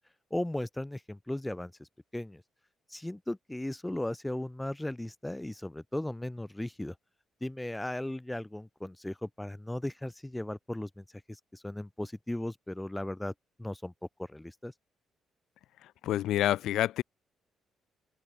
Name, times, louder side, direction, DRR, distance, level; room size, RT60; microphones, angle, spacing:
voice 1, 0.3-1.9 2.1-2.4 2.9-6.9 7.4-11.0 11.5-13.3 13.6-13.9 14.3-14.7, left 1 dB, 10° left, 5.1 m, -36 dB
voice 2, 16.0-17.0, left 13 dB, 80° left, 0.8 m, -27 dB
open air
cardioid pair, 90°, 0 cm